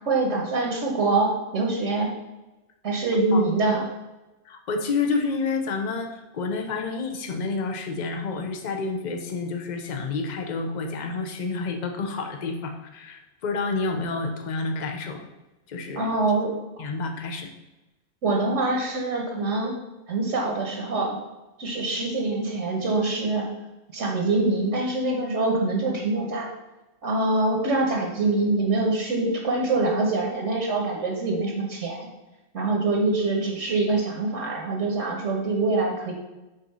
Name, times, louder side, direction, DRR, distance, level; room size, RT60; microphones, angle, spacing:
voice 1, 0.0-2.1 2.8-3.9 15.9-16.8 18.2-19.7 20.1-21.2 21.6-23.4 23.9-26.5 27.0-32.1 32.5-36.1, right 2 dB, 75° right, 0 dB, 1.4 m, -24 dB
voice 2, 4.5-15.3 15.7-16.1 16.8-17.5, left 4 dB, 40° left, 4 dB, 0.8 m, -29 dB
5.5 x 4.0 x 5.5 m, 1.0 s
omnidirectional pair, 1.3 m